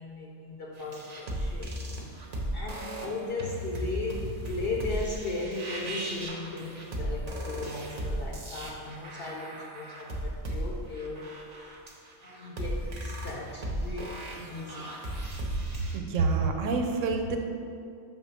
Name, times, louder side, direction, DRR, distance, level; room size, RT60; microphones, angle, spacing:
voice 1, 0.0-1.7 2.5-11.4 12.2-15.0, left 2 dB, 60° left, -2 dB, 0.8 m, -37 dB
sound 1, 0.8-16.0, right 1 dB, 40° right, 0.7 m, -36 dB
voice 2, 15.9-17.4, right 4 dB, 80° right, 4 dB, 1.0 m, -27 dB
6.2 x 3.0 x 5.6 m, 2.5 s
omnidirectional pair, 1.3 m